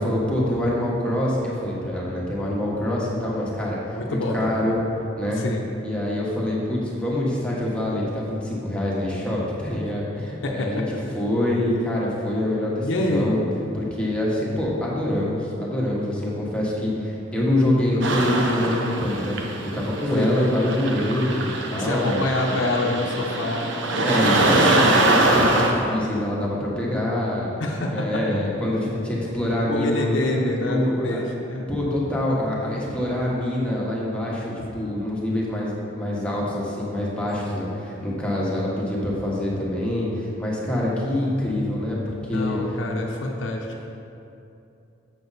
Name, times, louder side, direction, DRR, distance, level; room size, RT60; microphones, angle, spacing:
voice 1, 0.0-3.8 4.1-4.8 5.2-5.4 5.8-10.8 11.1-13.4 13.7-19.4 19.7-22.2 24.0-27.5 27.9-30.2 30.6-31.2 31.7-42.6, left 1 dB, 5° left, -6 dB, 1.3 m, -25 dB
voice 2, 3.9-4.6 5.3-5.7 10.4-11.0 12.8-13.4 20.2-20.4 21.8-24.5 24.9-25.0 27.6-28.4 29.7-31.7 32.6-32.8 34.8-35.1 37.5-37.7 42.3-43.9, left 1 dB, 75° left, 0 dB, 0.7 m, -27 dB
sound 1, 18.0-25.7, right 2 dB, 70° right, 0.8 m, -23 dB
7.3 x 6.7 x 4.1 m, 2.7 s
head